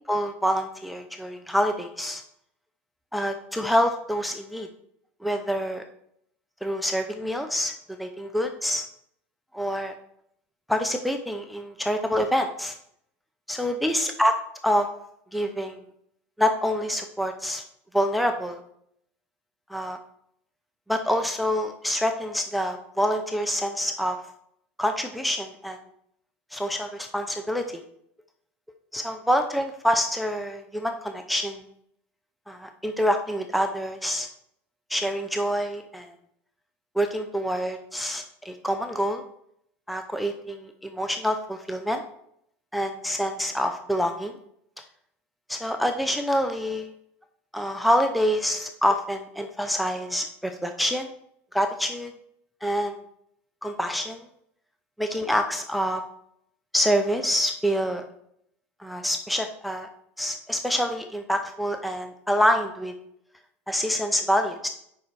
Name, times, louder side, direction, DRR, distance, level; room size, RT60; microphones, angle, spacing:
voice 1, 0.1-2.2 3.1-4.7 5.2-5.8 6.6-7.7 8.0-8.9 9.5-9.9 10.7-12.8 13.5-14.3 14.6-14.9 15.3-15.8 16.4-17.6 17.9-18.6 19.7-20.0 20.9-24.2 24.8-25.8 26.5-27.8 28.9-31.6 32.5-34.3 34.9-36.1 36.9-39.2 39.9-42.0 42.7-44.3 45.5-46.9 47.5-51.1 51.5-52.1 52.6-53.0 53.6-54.3 55.0-56.0 56.7-58.0 58.8-59.9 60.2-62.9 63.7-64.7, equal, ahead, 6 dB, 0.7 m, -26 dB
7.1 x 5.6 x 4.7 m, 0.71 s
supercardioid pair, 100°, 7 cm